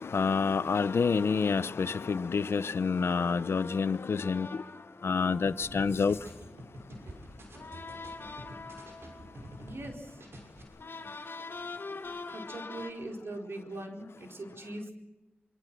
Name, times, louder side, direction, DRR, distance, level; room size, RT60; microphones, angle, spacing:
voice 1, 0.1-4.5 5.0-6.2, left 5 dB, 90° left, 0.8 m, -28 dB
sound 1, 0.7-7.0 7.5-12.9, left 3 dB, 65° left, 2.9 m, -45 dB
sound 2, 5.4-9.9 10.2-10.6, right 1 dB, 85° right, 6.2 m, -47 dB
voice 2, 9.6-10.2 12.3-14.9, right 1 dB, 70° right, 4.5 m, -41 dB
25.0 x 24.5 x 6.3 m
cardioid pair, 55°, 4 cm